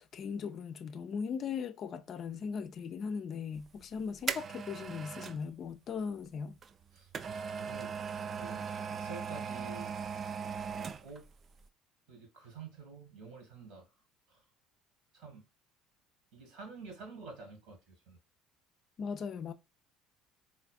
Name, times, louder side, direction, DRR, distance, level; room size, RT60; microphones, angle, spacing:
voice 1, 0.1-6.6 19.0-19.5, left 6 dB, 45° left, 0.4 m, -38 dB
sound 1, 3.7-5.4 6.6-11.3 11.6-11.7, right 6 dB, 35° right, 0.3 m, -39 dB
voice 2, 6.9-7.9 8.2-9.9 10.7-11.3 12.1-13.9 14.3-14.4 15.1-15.4 16.3-18.2, right 4 dB, 60° right, 1.6 m, -49 dB
4.1 x 3.1 x 2.3 m
figure-of-eight pair, 60°, 0 cm